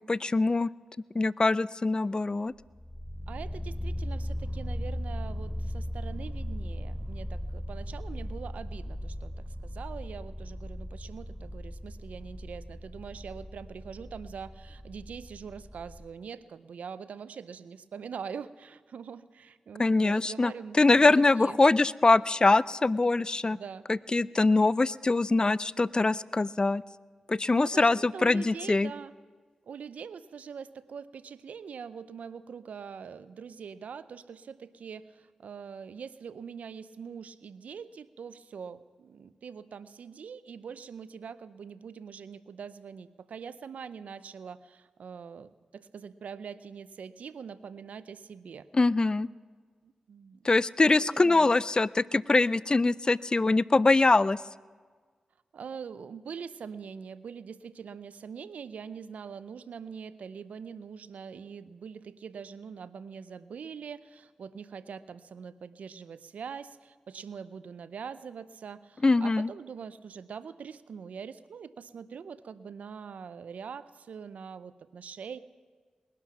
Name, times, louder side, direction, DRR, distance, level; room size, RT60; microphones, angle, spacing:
voice 1, 0.1-0.7 1.1-2.5 19.8-23.6 23.9-26.8 27.3-28.9 48.7-49.3 50.4-54.4 69.0-69.5, left 3 dB, 35° left, 20 dB, 0.4 m, -23 dB
sound 1, 2.5-16.0, equal, 5° right, 5.0 m, -38 dB
voice 2, 3.3-21.6 23.5-23.9 27.6-29.1 29.7-48.7 49.8-50.5 50.8-51.5 55.5-75.4, right 6 dB, 80° right, 15 dB, 0.6 m, -43 dB
20.0 x 11.5 x 6.0 m, 1.5 s
cardioid pair, 40°, 2 cm